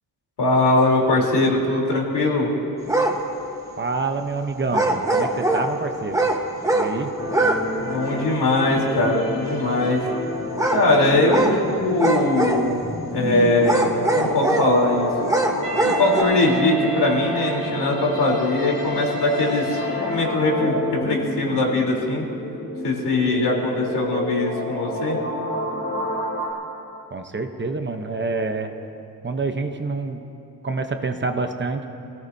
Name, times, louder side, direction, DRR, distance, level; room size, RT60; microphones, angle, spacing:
voice 1, 0.4-2.5 7.8-10.0 10.7-12.8 13.1-15.1 15.8-22.2 22.8-25.2, left 2 dB, 90° left, -2 dB, 3.6 m, -21 dB
sound 1, 2.9-3.2 4.7-5.7 6.1-6.9 7.3-7.6 7.9-8.0 10.6-10.8 11.3-11.6 12.0-12.8 13.6-14.7 15.2-16.2, right 2 dB, 10° right, 1.2 m, -22 dB
voice 2, 3.8-6.3 6.7-7.1 27.1-28.7 29.2-30.2 30.6-31.8, right 3 dB, 30° right, 5 dB, 0.8 m, -27 dB
sound 2, 7.2-26.5, left 1 dB, 35° left, 3.6 m, -30 dB
Wind instrument woodwind instrument, 15.6-20.6, left 1 dB, 70° right, 4.3 m, -32 dB
28.5 x 17.0 x 2.7 m, 3.0 s
wide cardioid pair, 165°, 39 cm